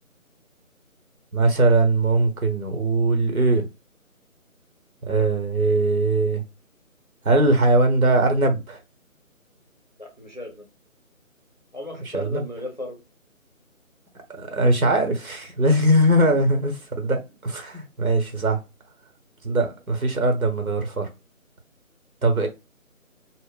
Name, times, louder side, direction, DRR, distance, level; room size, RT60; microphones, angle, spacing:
voice 1, 1.3-3.7 5.1-6.4 7.2-8.8 12.1-12.4 14.3-18.6 19.4-21.1 22.2-22.5, right 2 dB, 80° right, 1.0 m, -20 dB
voice 2, 10.0-10.7 11.7-13.0 16.3-16.4, left 1 dB, 35° left, 0.6 m, -35 dB
2.1 x 2.1 x 3.7 m
figure-of-eight pair, 155°, 42 cm